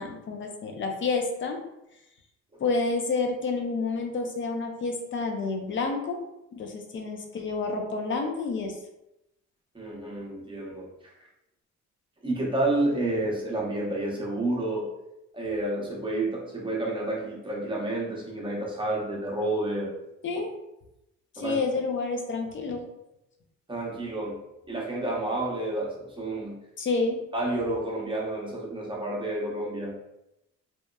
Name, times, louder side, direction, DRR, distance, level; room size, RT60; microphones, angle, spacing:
voice 1, 0.0-1.6 2.6-6.2 6.5-8.8 20.2-20.5 21.4-22.8 26.8-27.2, left 3 dB, 40° left, 4 dB, 0.5 m, -29 dB
voice 2, 9.7-10.9 12.2-14.9 15.3-19.9 21.4-21.6 23.7-24.4 24.7-26.6 27.3-30.0, right 2 dB, 15° right, -3 dB, 0.8 m, -30 dB
2.9 x 2.1 x 2.2 m, 0.87 s
cardioid pair, 90°, 30 cm